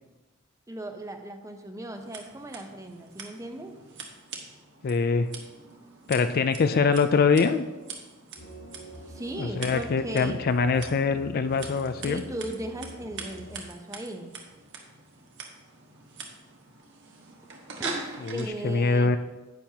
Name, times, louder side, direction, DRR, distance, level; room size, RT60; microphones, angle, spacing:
voice 1, 0.7-3.8 9.1-10.4 12.0-14.3 17.8-19.1, right 1 dB, 15° right, 5 dB, 0.7 m, -37 dB
Scissors, 1.9-18.5, right 4 dB, 60° right, 1.3 m, -43 dB
voice 2, 4.8-5.3 6.1-7.6 9.4-12.2 18.2-19.2, left 4 dB, 45° left, 10 dB, 0.4 m, -24 dB
sound 1, 8.4-13.6, right 1 dB, 65° left, 2.2 m, -46 dB
10.0 x 8.7 x 2.9 m, 1.2 s
head